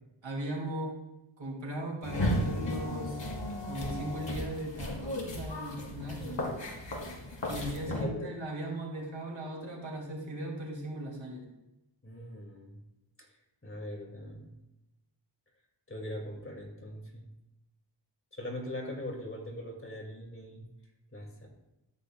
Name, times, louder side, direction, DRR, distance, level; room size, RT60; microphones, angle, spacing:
voice 1, 0.2-1.0 1.4-3.3 3.6-6.4 7.4-11.5, right 1 dB, 85° right, -2 dB, 2.8 m, -38 dB
sound 1, 2.0-8.0, left 1 dB, 75° left, 1.9 m, -35 dB
voice 2, 7.9-8.3 12.0-12.8 13.6-14.5 15.9-17.3 18.3-20.6 21.1-21.5, left 1 dB, 30° left, -1 dB, 2.4 m, -41 dB
13.5 x 8.3 x 2.4 m, 0.97 s
wide cardioid pair, 80°, 45 cm